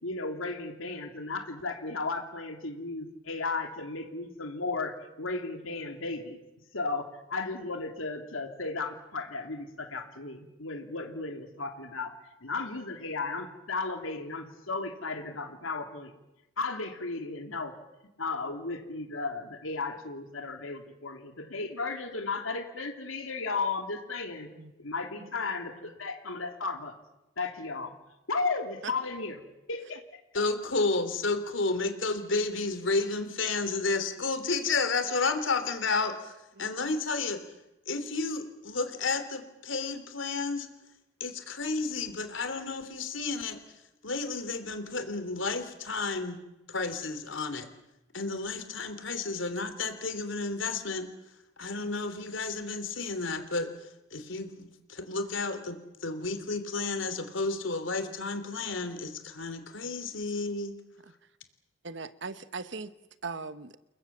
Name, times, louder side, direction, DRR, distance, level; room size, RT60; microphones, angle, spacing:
voice 1, 0.0-6.4 6.7-12.1 12.4-16.1 16.6-17.7 18.2-24.5 24.8-26.9 27.4-27.9 28.3-29.4 29.7-30.0, left 3 dB, 90° left, 5 dB, 3.0 m, -35 dB
voice 2, 30.3-37.4 37.9-40.7 41.2-43.6 44.0-46.4 46.7-47.7 48.1-51.1 51.6-60.7, left 3 dB, 70° left, 9 dB, 3.2 m, -31 dB
voice 3, 61.8-62.9 63.2-63.8, right 4 dB, 60° right, 13 dB, 1.2 m, -39 dB
29.5 x 21.0 x 7.4 m, 0.95 s
head